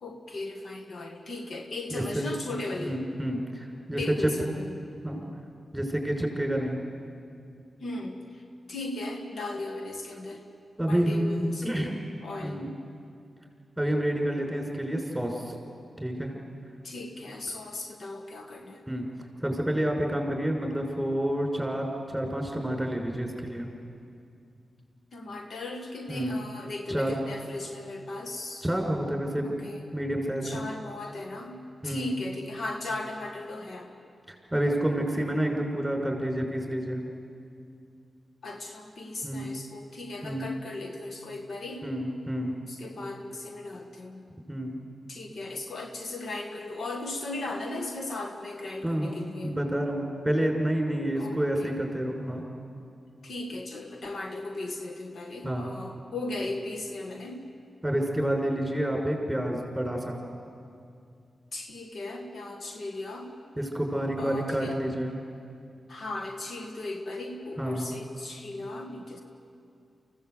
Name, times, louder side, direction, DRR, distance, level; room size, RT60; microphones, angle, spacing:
voice 1, 0.0-3.0 4.0-4.8 7.8-8.4 8.7-10.4 10.9-12.6 16.8-18.8 25.1-28.7 29.4-29.8 30.4-33.9 38.4-41.9 42.7-44.2 45.1-49.6 51.2-51.7 53.2-57.5 61.5-63.4 64.2-64.8 65.9-69.2, left 2 dB, 65° left, 4 dB, 1.8 m, -37 dB
voice 2, 1.9-2.3 2.8-4.3 5.0-5.2 5.7-6.8 10.8-11.9 12.4-12.7 13.8-15.6 16.0-16.3 18.9-19.1 19.4-23.7 26.1-26.4 26.9-27.2 28.6-29.6 29.9-30.6 31.8-32.2 34.3-37.0 39.2-39.5 40.2-40.5 41.8-42.6 44.5-44.8 48.8-49.1 49.4-52.4 55.4-55.7 57.8-60.2 63.6-65.2 67.6-67.9, right 1 dB, 5° right, 1 dB, 6.0 m, -29 dB
24.5 x 16.5 x 8.3 m, 2.4 s
cardioid pair, 45°, 0 cm